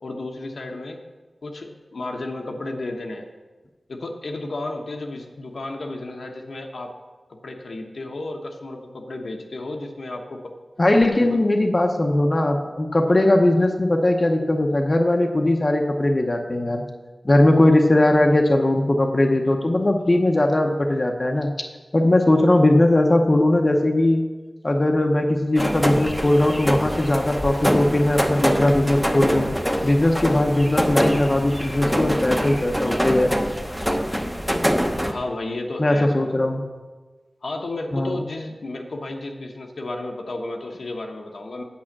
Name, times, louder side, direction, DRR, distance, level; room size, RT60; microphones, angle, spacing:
voice 1, 0.0-1.0 1.4-3.3 3.9-6.9 7.3-10.5 11.2-11.4 35.0-36.1 37.4-41.6, left 2 dB, 75° left, 2 dB, 1.1 m, -33 dB
voice 2, 10.8-16.9 17.2-21.5 21.9-24.2 24.6-29.5 29.8-33.3 35.8-36.6 37.9-38.2, left 1 dB, 35° left, 3 dB, 0.8 m, -19 dB
sound 1, 25.6-35.1, equal, ahead, 0.8 m, -24 dB
8.7 x 5.6 x 7.4 m, 1.3 s
wide cardioid pair, 85°, 0 cm